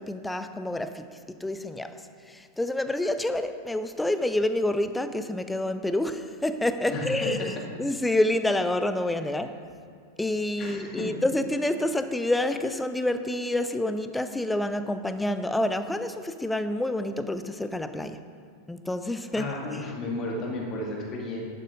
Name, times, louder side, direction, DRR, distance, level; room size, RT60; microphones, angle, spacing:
voice 1, 0.0-7.5 7.8-9.6 10.2-18.2 18.7-19.8, left 1 dB, 5° left, 10 dB, 0.5 m, -28 dB
voice 2, 6.9-7.5 10.6-11.1 19.3-21.4, left 2 dB, 30° left, -2 dB, 2.6 m, -33 dB
11.5 x 9.1 x 3.8 m, 2.2 s
figure-of-eight pair, 90°, 0 cm